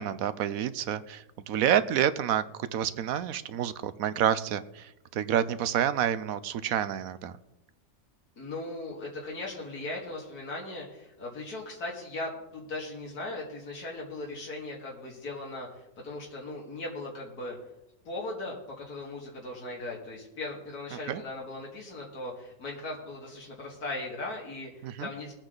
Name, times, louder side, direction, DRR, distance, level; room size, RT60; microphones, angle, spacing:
voice 1, 0.0-7.3 21.1-21.2 24.8-25.1, right 10 dB, 70° right, 14 dB, 1.1 m, -28 dB
voice 2, 8.4-17.6 18.0-25.3, left 2 dB, 85° left, -3 dB, 2.7 m, -38 dB
20.0 x 8.8 x 3.9 m, 0.90 s
omnidirectional pair, 1.6 m